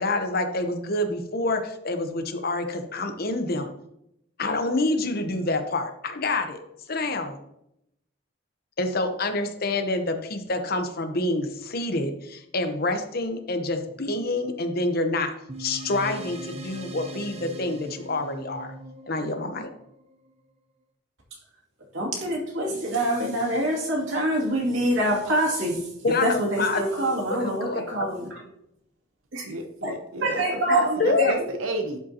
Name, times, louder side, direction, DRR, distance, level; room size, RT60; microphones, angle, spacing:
voice 1, 0.0-3.7 4.4-6.6 6.9-7.4 8.8-15.3 15.6-18.7 19.1-19.7 26.0-26.8 27.1-28.1 31.0-31.3, left 2 dB, 50° left, 7 dB, 0.8 m, -27 dB
sound 1, 15.5-20.3, right 1 dB, 30° right, 0.7 m, -40 dB
voice 2, 21.9-28.4 29.3-29.5 29.8-29.9 30.2-31.4, right 1 dB, 65° right, -2 dB, 2.4 m, -25 dB
voice 3, 29.4-32.0, right 2 dB, 85° right, 5 dB, 0.8 m, -32 dB
11.5 x 5.2 x 2.8 m, 0.78 s
head